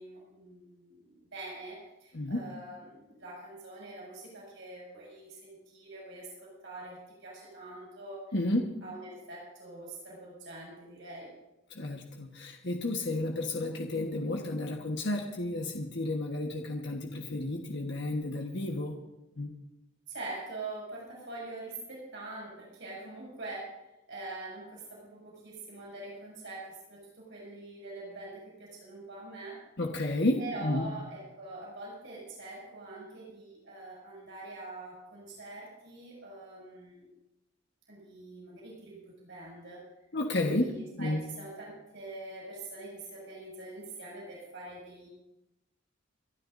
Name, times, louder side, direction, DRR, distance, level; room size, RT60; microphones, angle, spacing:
voice 1, 0.0-8.2 8.8-11.3 20.1-23.8 24.1-29.6 30.4-37.1 37.9-39.8 40.4-45.1, right 2 dB, 65° right, -5 dB, 6.6 m, -44 dB
voice 2, 8.3-8.7 11.7-18.9 19.4-19.5 29.8-30.8 40.1-41.2, left 1 dB, 60° left, 1 dB, 1.3 m, -32 dB
29.5 x 12.5 x 2.6 m, 0.95 s
head